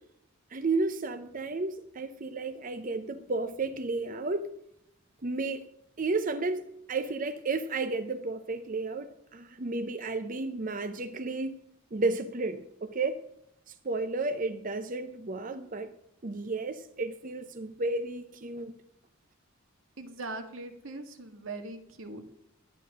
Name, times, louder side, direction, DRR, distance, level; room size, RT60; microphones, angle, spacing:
voice 1, 0.5-4.5 5.2-5.6 6.0-6.6 6.9-11.6 11.9-13.2 13.8-15.9 16.2-18.7, right 3 dB, 40° right, 0.7 m, -32 dB
voice 2, 20.0-22.2, right 2 dB, 90° right, 1.8 m, -40 dB
11.5 x 9.9 x 6.2 m
head